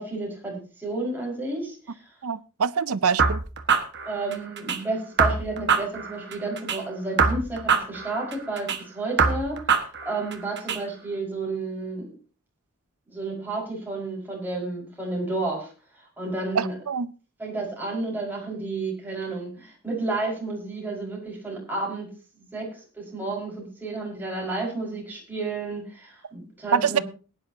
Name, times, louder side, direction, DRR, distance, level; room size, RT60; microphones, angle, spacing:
voice 1, 0.0-2.0 4.1-9.7 10.1-12.1 13.1-15.7 16.2-16.7 17.4-22.1 22.4-27.0, right 2 dB, 10° right, 5.3 m, -31 dB
voice 2, 2.2-3.4 16.5-17.1 26.7-27.0, right 6 dB, 80° right, 0.6 m, -24 dB
sound 1, 3.2-4.8 5.2-6.8 7.2-8.8 9.2-10.8, right 5 dB, 50° right, 1.6 m, -24 dB
20.5 x 10.5 x 2.8 m
head